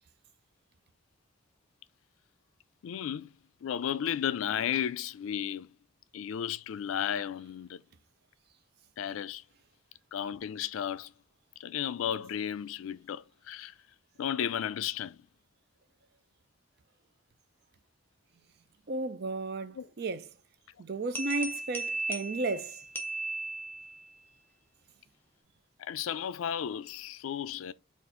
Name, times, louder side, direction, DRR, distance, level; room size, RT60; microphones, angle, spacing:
voice 1, 2.8-3.3 3.6-5.7 6.1-7.8 9.0-9.4 10.1-11.1 11.6-13.7 14.2-15.2 19.7-19.9 25.8-27.7, left 9 dB, 80° left, 0.3 m, -34 dB
voice 2, 18.9-20.3 20.8-22.8, right 3 dB, 50° right, 0.4 m, -34 dB
sound 1, 21.2-24.1, right 2 dB, 10° left, 0.6 m, -36 dB
4.3 x 2.4 x 3.6 m
head